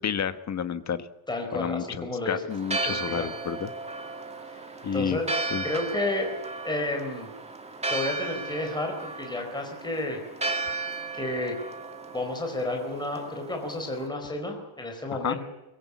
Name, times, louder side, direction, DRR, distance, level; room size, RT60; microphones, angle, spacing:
voice 1, 0.0-1.1 1.5-3.7 4.8-5.2 5.5-5.6 15.2-15.4, left 8 dB, 35° left, 11 dB, 1.3 m, -30 dB
voice 2, 1.3-2.5 2.8-3.3 4.5-4.6 4.9-5.3 5.6-6.3 6.6-7.3 7.9-10.2 11.1-11.6 12.1-15.5, left 2 dB, 10° left, 3 dB, 4.4 m, -31 dB
Church bell, 2.5-14.1, right 3 dB, 15° right, 2.2 m, -35 dB
23.0 x 21.5 x 8.4 m, 1.0 s
cardioid pair, 180°, 47 cm